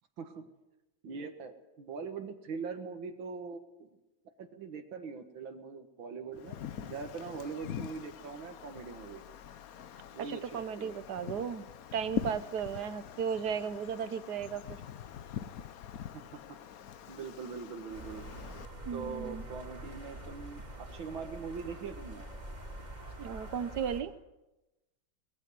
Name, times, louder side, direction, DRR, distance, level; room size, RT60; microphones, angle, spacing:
voice 1, 0.2-0.5 1.0-3.9 4.4-9.2 10.1-11.0 16.1-16.2 17.1-18.2 18.9-22.3, right 5 dB, 90° right, 5 dB, 2.3 m, -42 dB
Wind, 6.3-18.7, left 9 dB, 55° left, 1.1 m, -44 dB
voice 2, 10.3-11.7 11.9-14.8 18.9-19.4 23.2-24.1, right 7 dB, 60° right, 14 dB, 1.5 m, -35 dB
sound 1, 17.9-24.0, right 1 dB, 20° right, 3.2 m, -45 dB
20.5 x 15.5 x 9.6 m, 1.0 s
omnidirectional pair, 2.1 m